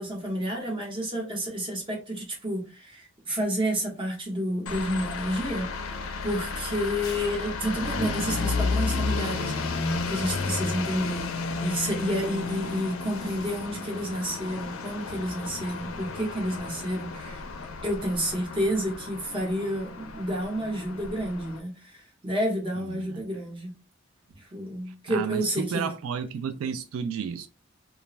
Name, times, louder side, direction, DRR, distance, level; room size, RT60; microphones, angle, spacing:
voice 1, 0.0-9.7 10.1-17.4 17.8-23.7 24.3-25.9, equal, 25° right, 0.8 m, -30 dB
sound 1, 4.7-21.6, left 3 dB, 80° left, 0.4 m, -32 dB
voice 2, 22.9-23.3 24.9-27.5, right 7 dB, 85° right, 0.3 m, -32 dB
2.4 x 2.1 x 3.0 m
head